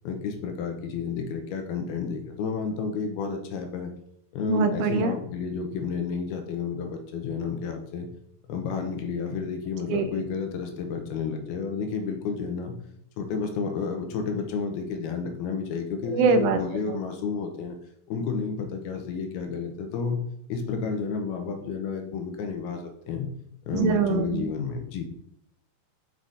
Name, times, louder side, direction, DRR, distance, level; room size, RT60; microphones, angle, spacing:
voice 1, 0.0-3.9 4.3-8.1 8.5-12.8 13.2-17.8 18.1-20.2 20.5-23.3 23.7-25.1, left 5 dB, 80° left, 5 dB, 2.8 m, -31 dB
voice 2, 4.5-5.2 9.9-10.1 16.0-16.6 16.9-17.0 23.7-24.5, right 5 dB, 80° right, 7 dB, 2.3 m, -23 dB
7.5 x 4.9 x 4.0 m, 0.73 s
omnidirectional pair, 4.6 m